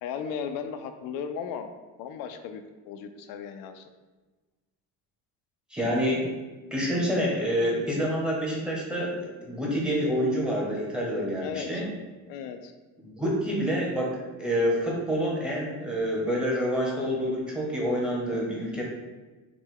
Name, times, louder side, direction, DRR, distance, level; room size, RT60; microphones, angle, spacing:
voice 1, 0.0-1.7 2.0-3.9 11.4-11.8 12.3-12.7, left 7 dB, 85° left, 7 dB, 0.5 m, -36 dB
voice 2, 5.7-6.3 6.7-11.8 13.0-18.8, equal, 5° right, -4 dB, 0.8 m, -27 dB
5.8 x 2.2 x 3.7 m, 1.2 s
cardioid pair, 165°, 34 cm